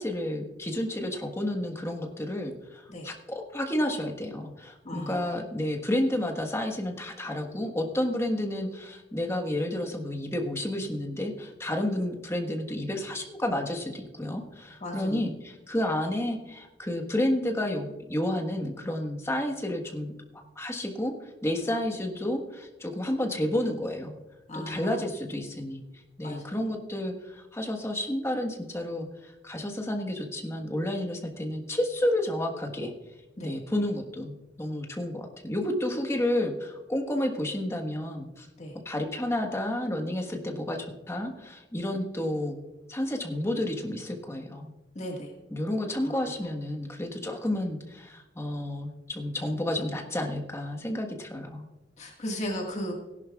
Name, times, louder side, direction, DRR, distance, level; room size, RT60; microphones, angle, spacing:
voice 1, 0.0-20.1 20.5-24.2 24.5-25.8 26.2-32.9 33.4-38.5 38.8-42.6 42.9-44.7 45.5-51.7, left 1 dB, 15° left, 3 dB, 1.4 m, -31 dB
voice 2, 4.8-5.2 14.8-15.2 24.5-24.9 26.2-26.4 33.4-33.5 38.6-38.7 44.9-45.3 46.0-46.1 52.0-52.9, equal, 40° left, 0 dB, 1.7 m, -35 dB
18.0 x 11.0 x 2.4 m, 1.1 s
head